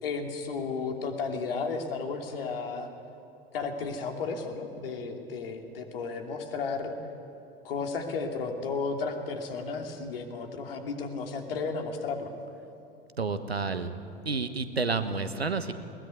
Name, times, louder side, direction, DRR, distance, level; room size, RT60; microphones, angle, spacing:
voice 1, 0.0-2.9 3.5-7.0 7.6-12.3, left 4 dB, 70° left, 4 dB, 2.9 m, -33 dB
voice 2, 13.2-13.9 14.2-15.7, right 4 dB, 85° right, 11 dB, 1.3 m, -30 dB
21.0 x 20.0 x 9.4 m, 2.9 s
figure-of-eight pair, 80°, 30 cm